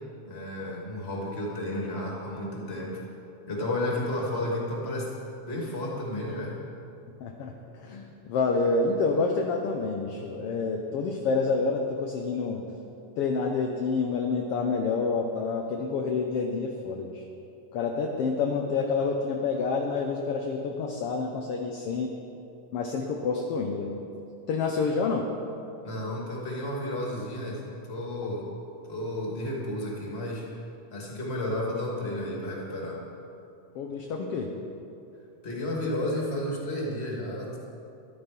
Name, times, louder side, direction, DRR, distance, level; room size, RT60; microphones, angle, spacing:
voice 1, 0.2-3.0 3.5-5.1 5.5-6.6 25.8-27.6 27.9-28.4 28.9-30.5 30.9-33.0 35.4-37.6, left 1 dB, 20° left, -2 dB, 2.4 m, -32 dB
voice 2, 7.2-12.6 13.2-17.2 17.7-22.1 22.7-23.9 24.5-25.3 33.7-34.5, left 4 dB, 70° left, 2 dB, 1.5 m, -28 dB
13.5 x 12.0 x 5.3 m, 2.8 s
omnidirectional pair, 3.4 m